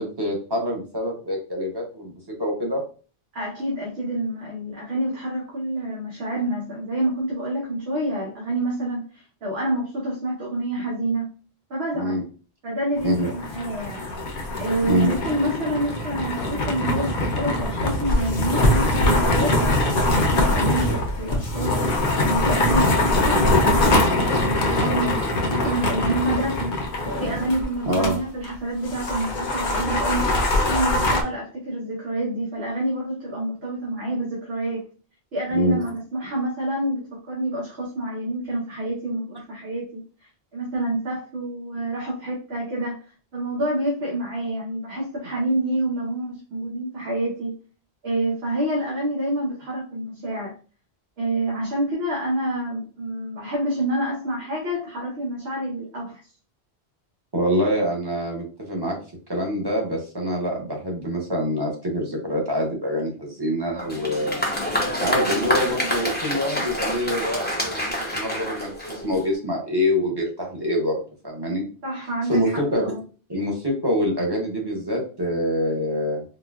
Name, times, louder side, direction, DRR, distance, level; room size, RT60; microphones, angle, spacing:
voice 1, 0.0-2.1 2.4-2.8 11.9-12.2 13.0-13.3 14.9-15.1 27.9-28.2 35.5-35.8 57.3-59.0 59.3-64.4 65.0-70.9 71.2-71.6 72.3-72.9 73.3-76.2, equal, 25° right, -1 dB, 0.8 m, -25 dB
voice 2, 3.3-11.3 11.7-12.2 12.6-14.1 14.6-25.2 25.5-26.7 27.2-34.9 35.3-40.0 40.5-47.5 48.0-50.5 51.2-56.2 71.8-73.0, right 1 dB, 80° right, -4 dB, 1.2 m, -28 dB
sound 1, 13.0-28.1 28.4-28.5 28.9-31.2, left 1 dB, 60° left, 0.8 m, -22 dB
Applause, 63.8-69.3, equal, 10° left, 0.6 m, -27 dB
4.0 x 2.2 x 2.3 m, 0.38 s
omnidirectional pair, 1.1 m